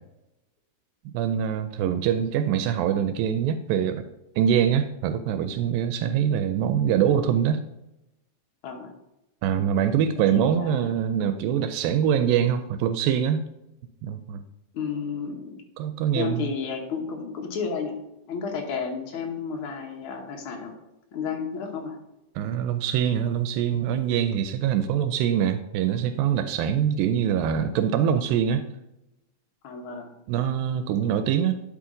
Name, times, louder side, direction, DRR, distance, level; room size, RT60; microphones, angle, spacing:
voice 1, 1.1-4.1 4.4-7.6 9.4-13.5 14.0-14.4 15.8-16.5 22.4-28.6 30.3-31.6, right 9 dB, 80° right, 9 dB, 2.2 m, -24 dB
voice 2, 10.3-10.9 14.7-15.6 16.1-18.0 18.3-20.7 21.1-22.0 29.6-30.1, left 5 dB, 75° left, 2 dB, 1.2 m, -32 dB
11.5 x 5.1 x 3.8 m, 0.91 s
omnidirectional pair, 4.2 m